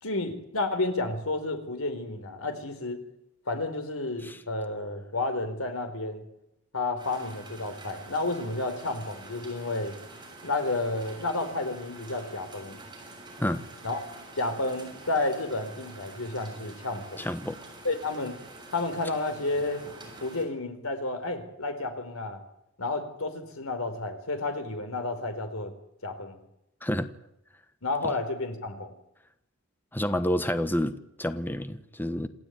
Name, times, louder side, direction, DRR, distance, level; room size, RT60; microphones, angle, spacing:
voice 1, 0.0-3.0 3.5-6.2 6.7-10.0 10.4-12.8 13.8-14.0 14.4-17.2 17.8-18.4 18.7-19.9 20.2-22.4 22.8-25.7 26.0-26.4 27.8-28.9, left 2 dB, 75° left, 8 dB, 4.4 m, -31 dB
sound 1, 7.0-20.5, right 2 dB, 20° right, 7.5 m, -47 dB
voice 2, 17.2-17.6 26.8-27.1 29.9-32.3, left 1 dB, 10° left, 10 dB, 1.3 m, -29 dB
27.5 x 15.5 x 9.4 m, 0.83 s
head